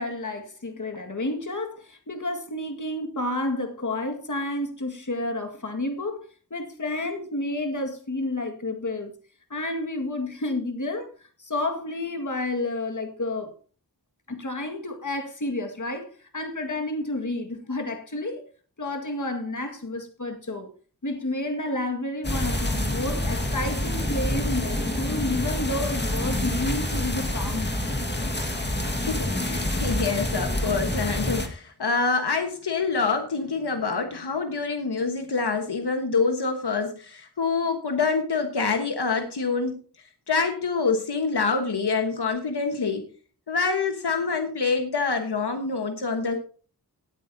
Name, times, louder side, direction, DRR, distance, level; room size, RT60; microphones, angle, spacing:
voice 1, 0.0-6.2 6.5-9.1 9.5-11.1 11.4-13.5 14.3-18.4 18.8-20.7 21.0-27.8, left 2 dB, 50° left, 1.9 m, -30 dB
sound 1, 22.2-31.5, left 1 dB, 25° left, 1.7 m, -27 dB
voice 2, 29.1-39.8 40.3-43.0 43.5-46.4, left 4 dB, 85° left, 1.4 m, -26 dB
18.0 x 8.9 x 2.7 m
wide cardioid pair, 65°, 39 cm